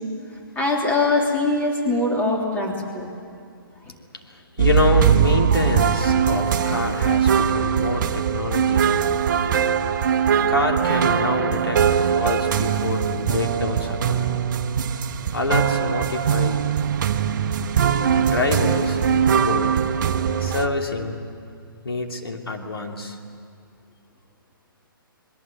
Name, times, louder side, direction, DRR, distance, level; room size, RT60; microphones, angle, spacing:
voice 1, 0.5-3.1 12.6-12.7, left 2 dB, 10° left, 0 dB, 3.4 m, -22 dB
voice 2, 4.3-9.2 10.5-14.3 15.3-16.6 18.2-19.0 19.3-19.8 20.4-21.2 21.8-23.2, left 3 dB, 85° left, 2 dB, 2.9 m, -26 dB
sound 1, 4.6-20.7, right 8 dB, 55° right, 1.2 m, -21 dB
26.5 x 21.5 x 9.0 m, 2.3 s
hypercardioid pair, 135°, 12 cm